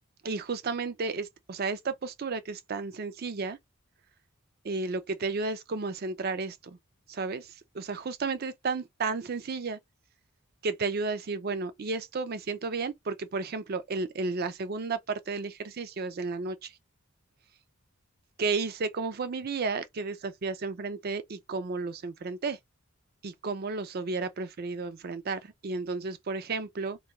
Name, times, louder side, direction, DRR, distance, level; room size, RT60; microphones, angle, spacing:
voice 1, 0.2-3.6 4.6-6.8 7.1-9.8 10.6-16.7 18.4-22.6 23.2-27.0, right 4 dB, 45° right, 0.4 m, -33 dB
2.3 x 2.3 x 2.8 m
head